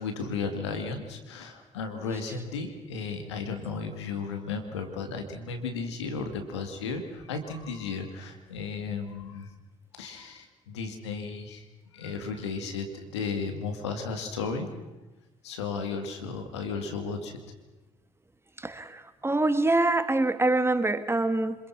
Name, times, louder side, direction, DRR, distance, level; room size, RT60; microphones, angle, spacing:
voice 1, 0.0-9.5 9.9-11.6 11.9-14.7 15.4-17.4, left 4 dB, 90° left, 6 dB, 2.3 m, -34 dB
voice 2, 18.6-21.6, right 2 dB, 15° right, 11 dB, 1.9 m, -25 dB
26.5 x 21.0 x 6.0 m, 1.1 s
hypercardioid pair, 55°, 14 cm